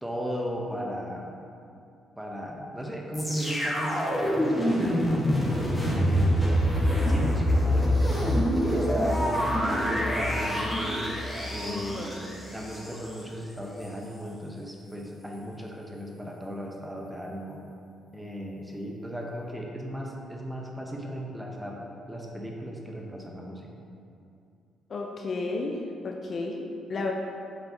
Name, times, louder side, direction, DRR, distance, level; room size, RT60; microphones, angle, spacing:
voice 1, 0.0-1.3 2.2-6.7 7.1-11.0 11.5-12.2 12.5-17.6 18.1-21.8 22.1-23.7, equal, 5° right, -1 dB, 0.9 m, -36 dB
sound 1, 3.1-13.2 13.8-13.9, equal, 10° left, 1.2 m, -26 dB
voice 2, 11.6-12.2 24.9-27.1, left 3 dB, 45° left, 1 dB, 0.6 m, -33 dB
7.9 x 4.4 x 2.8 m, 2.5 s
cardioid pair, 90°, 0 cm